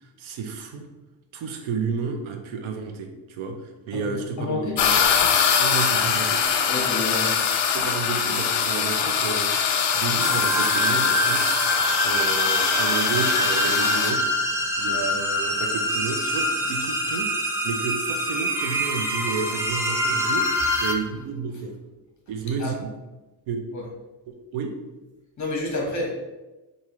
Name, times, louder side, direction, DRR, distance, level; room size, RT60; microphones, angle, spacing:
voice 1, 0.0-0.9 1.3-4.9 5.6-6.4 7.7-9.6 9.9-11.5 12.0-14.3 14.8-17.3 17.6-21.8 22.3-22.9 23.5-23.6 24.3-24.7, right 5 dB, 80° right, 4 dB, 0.8 m, -31 dB
voice 2, 4.4-4.8 6.7-7.3 22.6-22.8 23.7-23.8 25.4-26.1, left 2 dB, 35° left, -1 dB, 1.2 m, -28 dB
sound 1, 4.8-14.1, left 7 dB, 65° left, 0.6 m, -23 dB
sound 2, 10.2-20.9, equal, 5° right, 0.4 m, -25 dB
4.7 x 2.7 x 3.0 m, 1.1 s
cardioid pair, 115°, 47 cm